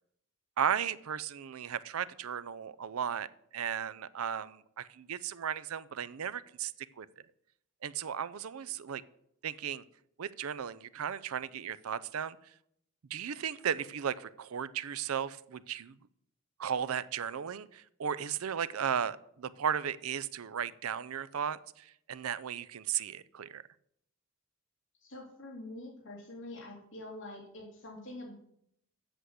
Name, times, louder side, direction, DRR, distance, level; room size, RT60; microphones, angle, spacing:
voice 1, 0.6-3.3 3.5-7.1 7.8-9.0 9.4-9.8 10.2-12.4 13.1-15.9 16.6-23.6, right 8 dB, 85° right, 17 dB, 0.5 m, -35 dB
voice 2, 25.0-28.3, left 1 dB, 60° left, -4 dB, 3.0 m, -45 dB
8.1 x 6.3 x 8.0 m, 0.72 s
head